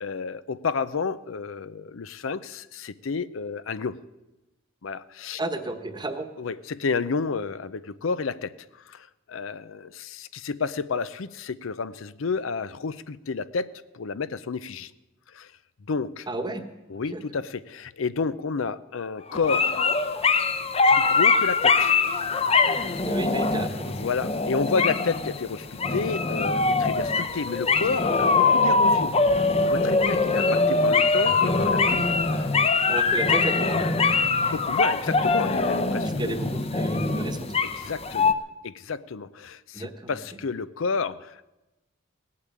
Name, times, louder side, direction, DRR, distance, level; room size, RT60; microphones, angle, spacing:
voice 1, 0.0-4.0 4.8-5.4 6.4-14.9 15.3-15.5 15.9-16.3 16.9-19.7 20.9-21.9 22.6-23.1 24.0-29.1 29.6-32.5 34.4-36.4 37.7-38.4 38.6-41.5, left 5 dB, 75° left, 15 dB, 0.6 m, -31 dB
voice 2, 5.4-6.3 16.3-16.6 16.9-17.2 23.0-24.0 32.9-34.0 36.0-37.5 39.7-40.1, right 2 dB, 20° right, 7 dB, 1.1 m, -32 dB
sound 1, 19.3-38.3, left 4 dB, 30° left, 0.7 m, -23 dB
18.5 x 8.6 x 8.6 m, 1.0 s
head